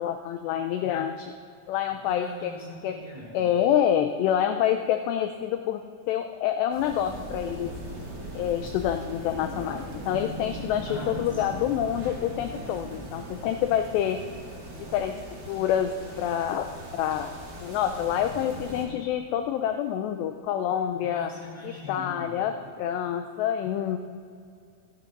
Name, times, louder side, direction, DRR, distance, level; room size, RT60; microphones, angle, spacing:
voice 1, 0.0-1.3 1.7-2.5 2.8-3.0 3.3-5.8 6.1-7.7 8.3-14.2 14.8-15.1 15.5-17.3 17.6-21.3 21.6-24.0, left 10 dB, 80° left, 7 dB, 2.5 m, -27 dB
voice 2, 2.0-3.4 10.9-11.7 21.0-22.3, left 2 dB, 10° right, -3 dB, 2.4 m, -41 dB
sound 1, 6.7-18.8, right 1 dB, 25° right, 2.0 m, -39 dB
25.5 x 10.5 x 5.3 m, 2.4 s
omnidirectional pair, 5.5 m